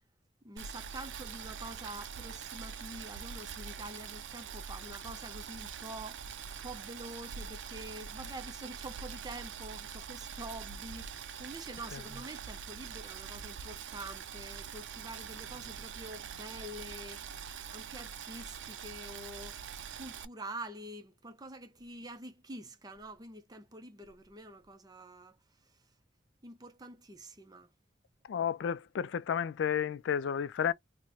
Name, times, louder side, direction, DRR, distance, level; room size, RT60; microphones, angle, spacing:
voice 1, 0.4-19.7 19.9-25.4 25.6-25.8 26.4-27.7, right 1 dB, 20° right, 0.6 m, -46 dB
Boiling, 0.6-20.3, right 7 dB, 85° right, 0.5 m, -44 dB
voice 2, 28.3-30.7, left 8 dB, 80° left, 0.3 m, -32 dB
2.9 x 2.1 x 3.8 m
head